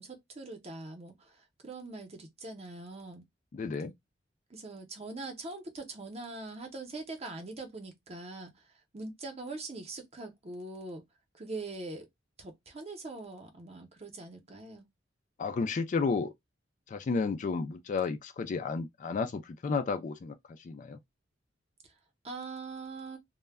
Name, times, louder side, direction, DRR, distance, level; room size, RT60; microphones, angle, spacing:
voice 1, 0.0-1.4 1.6-3.2 4.5-8.5 8.9-11.0 11.3-12.1 12.4-14.9 22.2-23.2, right 3 dB, 35° right, 0.7 m, -42 dB
voice 2, 3.5-3.9 15.4-16.3 16.9-21.0, left 4 dB, 40° left, 0.3 m, -32 dB
2.1 x 2.1 x 3.3 m
head